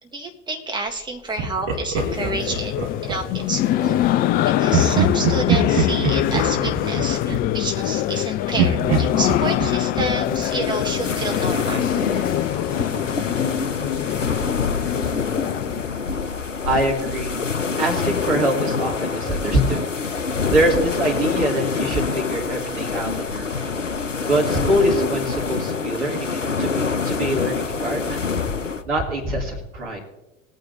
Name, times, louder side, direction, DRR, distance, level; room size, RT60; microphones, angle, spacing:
voice 1, 0.0-2.7 3.0-4.0 4.4-11.8, right 2 dB, 10° right, 2 dB, 1.6 m, -29 dB
Laughter, 1.4-3.5 4.7-8.2 8.6-11.3, right 4 dB, 50° right, 2.2 m, -25 dB
sound 1, 2.0-15.9, left 13 dB, 25° left, 0.4 m, -24 dB
sound 2, 10.6-28.8, left 5 dB, 90° left, 0.7 m, -26 dB
voice 2, 16.7-17.4 17.8-19.8 20.2-23.7 24.2-28.2 28.8-30.0, right 1 dB, 70° right, -1 dB, 3.0 m, -24 dB
19.5 x 9.0 x 2.7 m, 0.98 s
figure-of-eight pair, 75°, 36 cm